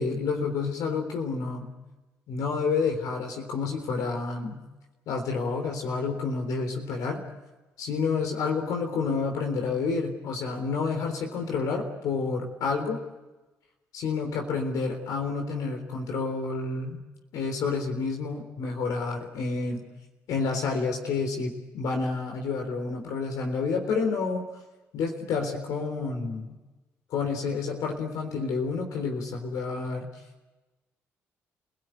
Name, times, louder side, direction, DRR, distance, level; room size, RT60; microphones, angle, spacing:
voice 1, 0.0-1.7 2.3-4.6 5.1-7.2 7.8-13.0 13.9-17.0 17.3-19.8 20.3-24.4 24.9-26.6 27.1-30.1, left 4 dB, 75° left, 3 dB, 3.8 m, -29 dB
28.0 x 17.0 x 9.2 m, 1.1 s
supercardioid pair, 55°, 6 cm